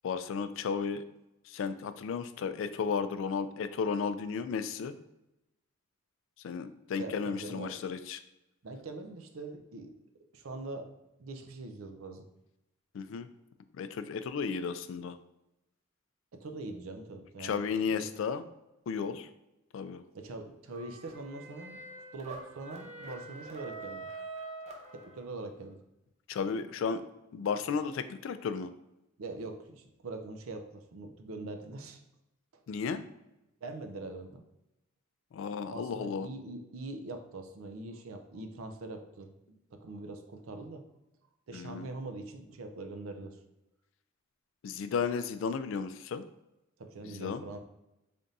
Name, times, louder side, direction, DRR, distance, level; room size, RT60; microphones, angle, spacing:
voice 1, 0.0-1.0 1.5-5.0 6.4-8.2 12.9-13.3 13.8-15.2 17.4-18.5 18.9-19.3 19.7-20.0 26.3-27.0 27.3-28.7 32.7-33.0 35.3-36.3 41.5-41.9 44.6-46.2 47.0-47.4, left 5 dB, 65° left, 11 dB, 0.3 m, -34 dB
voice 2, 7.0-7.8 8.6-9.9 10.3-10.9 11.2-12.3 16.3-17.6 17.9-18.1 20.1-21.8 22.1-24.1 24.9-25.8 29.2-32.0 32.5-32.6 33.6-34.4 35.7-39.3 39.7-40.8 41.5-43.4 46.8-47.6, right 2 dB, 85° right, 7 dB, 0.5 m, -43 dB
sound 1, 20.7-25.5, right 3 dB, 30° right, 0.5 m, -45 dB
3.4 x 2.5 x 4.0 m, 0.90 s
head